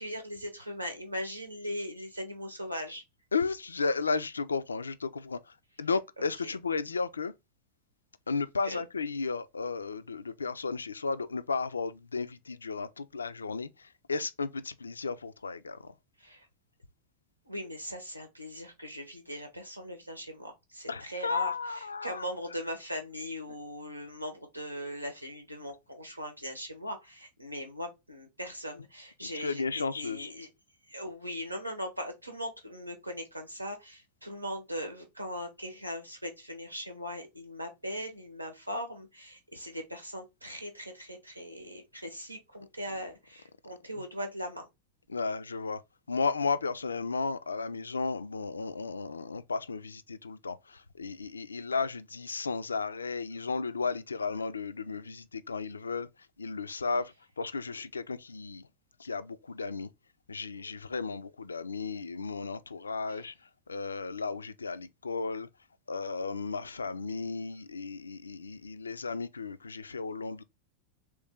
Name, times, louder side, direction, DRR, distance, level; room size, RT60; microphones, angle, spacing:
voice 1, 0.0-3.0 6.3-6.6 8.6-8.8 16.2-16.5 17.5-30.5 30.9-44.7 57.7-57.8 63.1-63.2, equal, 85° right, 0.9 m, -40 dB
voice 2, 3.3-7.3 8.3-15.9 20.9-22.2 29.3-30.3 45.1-45.8 46.1-56.1 56.4-58.6 59.0-59.9 60.3-63.3 63.7-65.5 65.9-70.4, left 4 dB, 75° left, 0.3 m, -34 dB
3.2 x 3.2 x 3.4 m
figure-of-eight pair, 90°, 0 cm